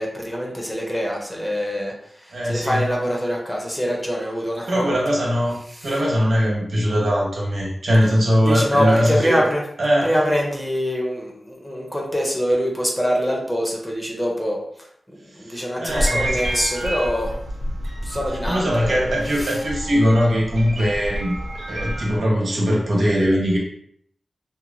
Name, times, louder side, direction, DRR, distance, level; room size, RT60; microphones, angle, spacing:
voice 1, 0.0-5.0 5.8-5.9 8.4-9.6 10.0-14.6 15.1-17.3 18.0-19.0 19.4-19.6, equal, 10° left, -1 dB, 0.5 m, -24 dB
voice 2, 2.3-2.9 4.7-9.5 9.8-10.2 15.4-16.4 18.5-21.4 21.7-23.6, equal, 70° right, -3 dB, 0.9 m, -20 dB
sound 1, 15.9-22.2, equal, 90° right, 0.4 m, -29 dB
2.8 x 2.1 x 2.5 m, 0.68 s
wide cardioid pair, 135°, 0 cm